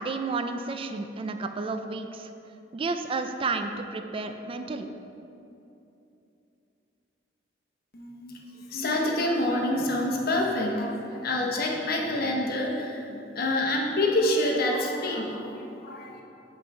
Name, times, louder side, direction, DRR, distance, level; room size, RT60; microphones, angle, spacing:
voice 1, 0.0-2.3 2.7-4.9, right 3 dB, 30° right, 7 dB, 0.4 m, -31 dB
voice 2, 7.9-8.4 8.7-16.2, left 1 dB, 55° left, 0 dB, 0.9 m, -27 dB
5.9 x 4.6 x 5.3 m, 2.8 s
head